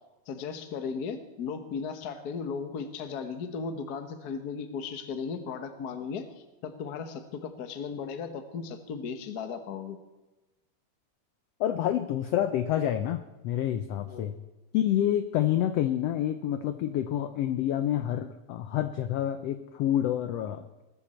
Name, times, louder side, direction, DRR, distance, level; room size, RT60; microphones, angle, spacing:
voice 1, 0.3-6.3 6.6-10.0 14.1-14.3, left 5 dB, 55° left, 8 dB, 1.0 m, -36 dB
voice 2, 11.6-14.4 14.7-20.7, left 11 dB, 80° left, 10 dB, 1.4 m, -28 dB
19.5 x 14.0 x 4.3 m, 1.1 s
omnidirectional pair, 3.7 m